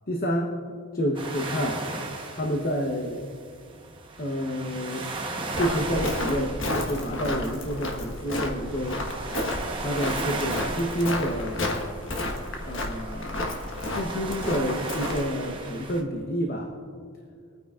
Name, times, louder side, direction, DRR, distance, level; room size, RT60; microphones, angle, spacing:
voice 1, 0.1-1.8 2.3-3.3 4.2-5.1 5.5-9.0 9.8-11.8 12.7-13.4 13.9-16.8, equal, 40° left, 1 dB, 0.9 m, -29 dB
sound 1, 1.1-16.0, right 2 dB, 25° right, 0.9 m, -37 dB
Walk footsteps, 5.5-15.3, left 1 dB, 60° left, 1.3 m, -32 dB
23.5 x 9.2 x 2.4 m, 2.2 s
head